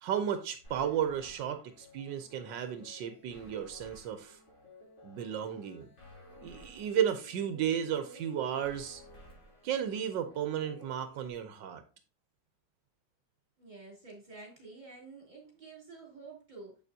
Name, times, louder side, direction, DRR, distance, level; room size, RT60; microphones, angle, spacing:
voice 1, 0.0-4.4 5.0-5.9 6.4-9.0 9.6-11.8, right 9 dB, 80° right, 8 dB, 1.4 m, -33 dB
sound 1, 0.6-11.3, left 1 dB, 65° left, 4.0 m, -55 dB
voice 2, 13.6-16.8, right 3 dB, 25° right, -2 dB, 3.3 m, -49 dB
7.6 x 6.7 x 2.7 m, 0.34 s
omnidirectional pair, 1.9 m